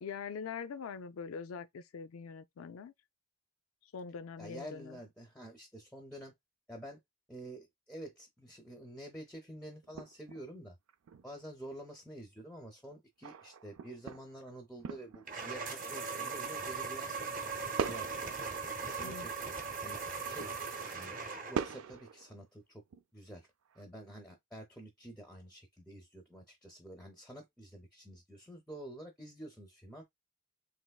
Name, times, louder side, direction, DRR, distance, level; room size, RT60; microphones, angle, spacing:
voice 1, 0.0-2.9 3.9-5.0 19.0-19.3, left 6 dB, 80° left, 0.4 m, -43 dB
voice 2, 4.4-6.3 6.7-7.0 7.3-10.8 11.2-17.2 17.7-18.3 18.9-19.5 19.8-20.0 20.3-20.5 20.9-22.8 23.1-23.5 23.7-30.0, right 1 dB, 5° left, 0.6 m, -48 dB
sound 1, 9.8-10.5 10.9-11.3 13.2-15.6 15.9-17.0 17.8-19.5 19.8-21.2 21.5-22.4 22.9-23.0 23.4-23.8, right 7 dB, 75° right, 0.4 m, -43 dB
sound 2, 15.3-21.8, right 5 dB, 40° right, 0.8 m, -39 dB
3.3 x 3.0 x 2.3 m
head